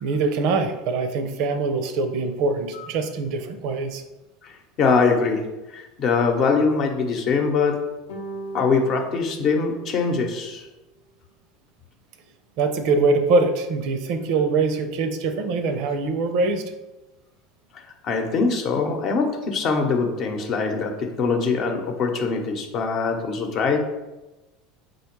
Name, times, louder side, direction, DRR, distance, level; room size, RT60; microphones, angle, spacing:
voice 1, 0.0-4.0 12.6-16.6, right 3 dB, 65° right, 8 dB, 0.5 m, -23 dB
voice 2, 4.4-5.5 5.7-7.8 8.5-10.7 18.0-23.8, left 4 dB, 50° left, 3 dB, 0.8 m, -23 dB
sound 1, 8.1-10.6, right 3 dB, 90° left, 0.9 m, -38 dB
4.9 x 2.3 x 4.5 m, 1.0 s
hypercardioid pair, 95°, 0 cm